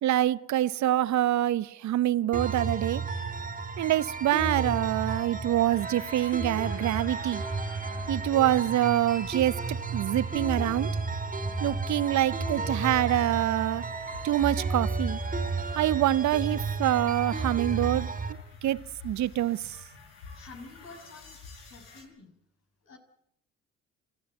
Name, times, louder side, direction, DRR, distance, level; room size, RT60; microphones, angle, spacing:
voice 1, 0.0-3.0 3.8-7.4 8.1-10.9 11.6-13.8 14.2-15.2 15.7-18.1 18.6-19.6, right 13 dB, 60° right, 0.9 m, -26 dB
sound 1, 2.3-18.3, right 3 dB, 25° right, 3.9 m, -32 dB
sound 2, 5.7-22.0, left 4 dB, 85° left, 6.4 m, -48 dB
voice 2, 20.3-21.4 21.6-22.3 22.8-23.0, left 3 dB, 50° left, 6.4 m, -48 dB
27.0 x 14.5 x 9.0 m
hypercardioid pair, 55°, 33 cm